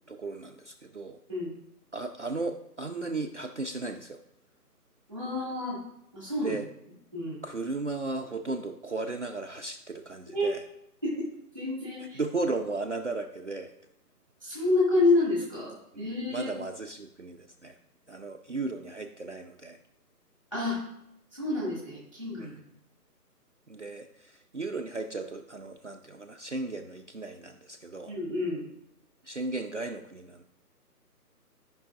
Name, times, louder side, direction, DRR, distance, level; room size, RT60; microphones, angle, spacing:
voice 1, 0.1-1.2 1.9-4.2 6.4-6.7 7.4-10.6 12.0-13.7 15.9-17.8 18.1-19.8 22.4-22.6 23.7-28.1 29.2-30.4, right 3 dB, 50° right, 3 dB, 0.4 m, -35 dB
voice 2, 5.1-5.8 6.1-6.5 7.1-7.4 10.3-10.5 11.0-11.3 11.5-12.2 14.4-16.5 20.5-20.8 21.3-22.6 28.1-28.6, left 2 dB, 5° left, -8 dB, 1.7 m, -28 dB
12.5 x 5.5 x 2.4 m, 0.79 s
hypercardioid pair, 175°, 48 cm